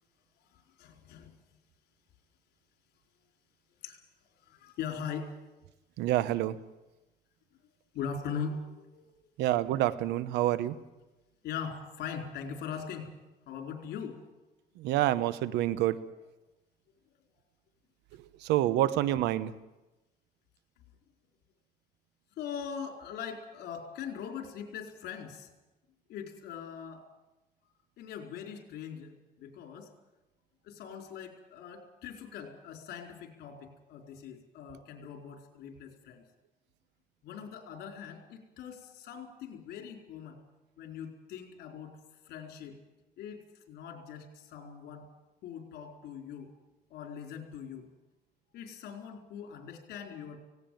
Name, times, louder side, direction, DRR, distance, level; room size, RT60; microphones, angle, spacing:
voice 1, 0.4-1.4 3.8-4.0 4.4-5.4 7.9-9.0 11.4-13.1 13.5-14.2 22.4-25.5 26.1-27.1 28.0-29.1 29.4-29.9 30.6-36.2 37.2-40.4 40.8-42.0 42.2-42.8 43.2-45.1 45.4-46.5 46.9-47.9 48.5-50.4, left 7 dB, 75° left, 3 dB, 4.5 m, -41 dB
voice 2, 6.0-6.6 9.4-10.8 14.8-16.0 18.4-19.5, right 14 dB, 85° right, 16 dB, 1.0 m, -27 dB
17.5 x 17.5 x 9.3 m, 1.0 s
cardioid pair, 110°, 17 cm